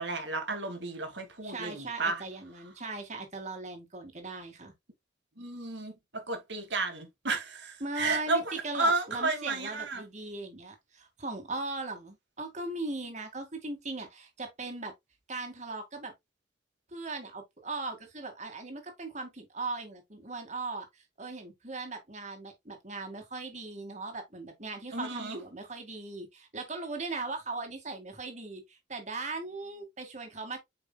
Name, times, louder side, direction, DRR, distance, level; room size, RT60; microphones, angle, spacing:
voice 1, 0.0-2.2 5.4-10.0 24.9-25.4, right 3 dB, 75° right, 2.3 m, -32 dB
voice 2, 1.4-4.7 7.8-14.9 15.3-16.1 16.9-30.6, right 3 dB, 40° right, 2.2 m, -39 dB
8.3 x 5.3 x 2.3 m
head